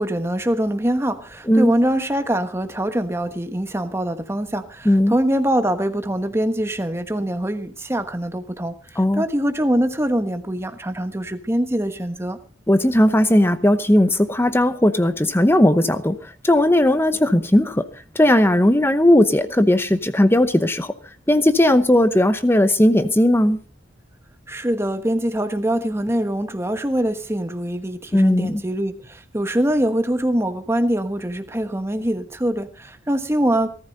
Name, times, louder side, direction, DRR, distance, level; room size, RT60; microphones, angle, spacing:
voice 1, 0.0-12.4 24.5-33.7, right 1 dB, 15° right, 1.2 m, -23 dB
voice 2, 4.8-5.2 9.0-9.2 12.7-17.9 18.1-20.9 21.3-23.6 28.1-28.6, left 1 dB, 10° left, 0.8 m, -17 dB
18.5 x 13.5 x 4.0 m
head